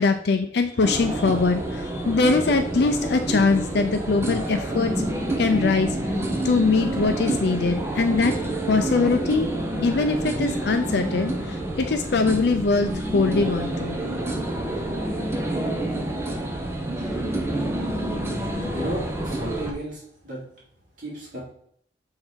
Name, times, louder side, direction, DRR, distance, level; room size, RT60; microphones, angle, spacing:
voice 1, 0.0-4.9 5.4-6.0 6.4-8.3 8.7-9.5 9.8-14.0, left 4 dB, 60° left, 7 dB, 0.5 m, -22 dB
sound 1, 0.8-19.7, right 1 dB, 15° right, 0.8 m, -28 dB
voice 2, 18.7-20.4 21.0-21.4, right 1 dB, 50° right, -7 dB, 2.6 m, -33 dB
6.5 x 3.8 x 4.4 m, 0.66 s
head